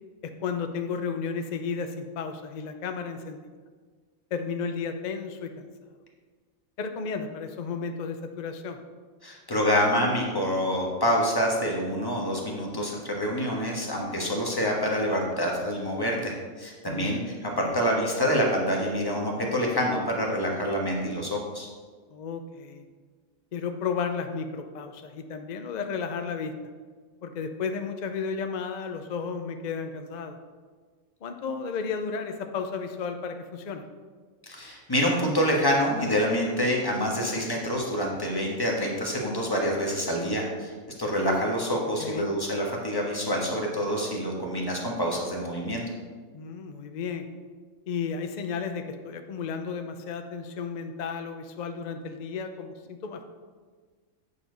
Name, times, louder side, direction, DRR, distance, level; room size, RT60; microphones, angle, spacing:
voice 1, 0.2-3.4 4.3-5.7 6.8-8.8 16.8-17.2 22.1-22.8 23.5-26.5 27.2-30.4 31.2-33.8 42.0-42.3 46.3-47.3 47.9-53.2, left 5 dB, 50° left, 6 dB, 0.5 m, -33 dB
voice 2, 9.2-21.7 34.5-40.7 41.0-45.8, equal, 15° left, -1 dB, 1.3 m, -27 dB
8.5 x 5.0 x 5.1 m, 1.5 s
omnidirectional pair, 1.4 m